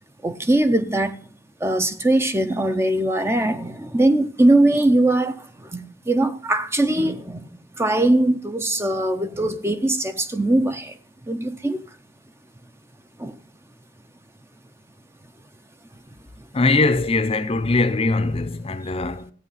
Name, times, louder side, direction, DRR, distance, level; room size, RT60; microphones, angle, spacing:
voice 1, 0.2-1.2 1.6-5.4 5.7-7.5 7.8-10.9 11.3-11.8 13.2-13.3, right 1 dB, 15° right, 0.6 m, -21 dB
voice 2, 16.5-19.3, left 3 dB, 30° left, 0.6 m, -21 dB
14.5 x 8.5 x 5.6 m
head